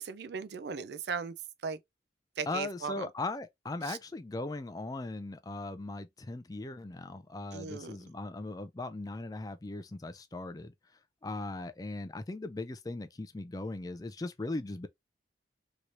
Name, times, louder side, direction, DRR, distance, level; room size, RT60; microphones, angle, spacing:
voice 1, 0.0-1.3 1.6-1.8 2.4-3.0 3.9-4.0 7.5-7.9, right 5 dB, 70° right, 0.4 m, -37 dB
voice 2, 2.5-10.7 11.2-14.9, left 2 dB, 20° left, 0.4 m, -38 dB
3.1 x 2.9 x 2.4 m
head